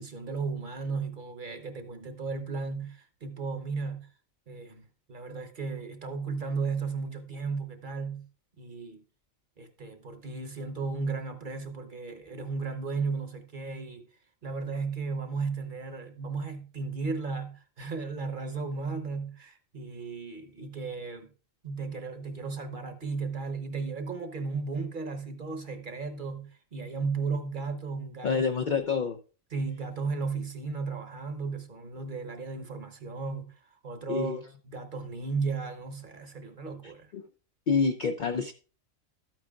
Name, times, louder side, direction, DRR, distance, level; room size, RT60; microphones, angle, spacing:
voice 1, 0.0-4.1 4.5-8.3 8.6-9.0 9.6-14.1 14.4-21.3 21.6-28.3 29.5-33.5 33.8-37.1, right 4 dB, 40° right, 1.0 m, -35 dB
voice 2, 28.2-29.2 34.1-34.4 36.8-37.2 37.7-38.5, left 5 dB, 60° left, 0.5 m, -28 dB
12.5 x 8.9 x 2.3 m
omnidirectional pair, 1.4 m